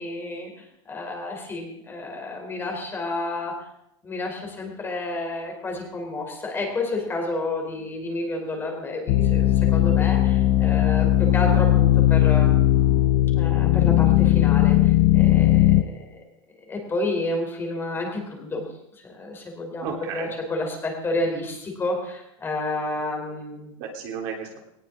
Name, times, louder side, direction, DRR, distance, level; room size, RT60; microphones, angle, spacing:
voice 1, 0.0-3.5 4.0-12.5 13.3-16.2 16.7-18.7 18.9-23.7, left 2 dB, 15° left, 1 dB, 3.4 m, -30 dB
sound 1, 9.1-15.8, left 13 dB, 45° left, 0.8 m, -18 dB
voice 2, 11.3-11.6 19.8-20.3 23.8-24.6, right 6 dB, 50° right, 1 dB, 3.4 m, -33 dB
19.0 x 19.0 x 3.7 m, 0.81 s
supercardioid pair, 165°, 17 cm